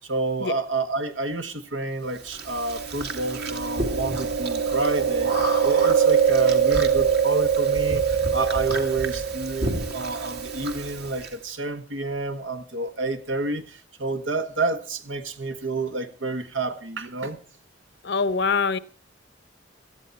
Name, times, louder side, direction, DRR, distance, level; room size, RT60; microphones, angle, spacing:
voice 1, 0.0-5.3 5.6-17.4, right 3 dB, 85° right, 1.6 m, -29 dB
Chewing mastication, 2.3-11.3, right 6 dB, 60° right, 2.2 m, -23 dB
voice 2, 18.0-18.8, left 5 dB, 60° left, 0.8 m, -23 dB
17.5 x 13.5 x 4.2 m
head